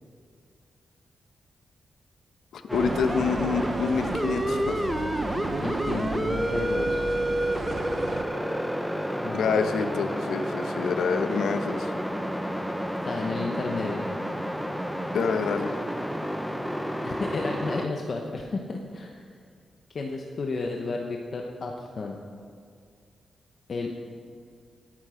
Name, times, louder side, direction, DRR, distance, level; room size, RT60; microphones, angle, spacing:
voice 1, 2.5-4.9 9.3-11.9 15.1-15.8, left 5 dB, 80° left, 8 dB, 0.9 m, -27 dB
sound 1, 2.7-17.9, equal, ahead, 0.6 m, -30 dB
sound 2, 2.7-8.2, right 5 dB, 45° right, 0.5 m, -34 dB
voice 2, 5.6-7.0 9.2-10.0 13.0-14.1 17.0-19.2 19.9-22.2 23.7-23.9, left 3 dB, 40° left, 2 dB, 0.9 m, -32 dB
14.5 x 10.0 x 5.0 m, 2.2 s
wide cardioid pair, 160°, 0 cm